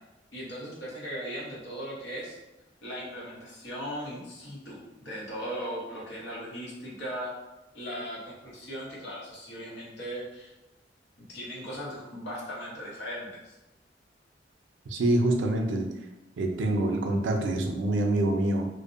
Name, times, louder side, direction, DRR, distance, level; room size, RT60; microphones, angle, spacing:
voice 1, 0.3-2.4 2.8-7.3 7.7-10.5 11.2-13.6, equal, 75° left, -5 dB, 0.8 m, -38 dB
voice 2, 14.9-15.9 16.4-18.7, right 1 dB, 85° right, 3 dB, 0.4 m, -26 dB
2.6 x 2.0 x 2.4 m, 1.0 s
head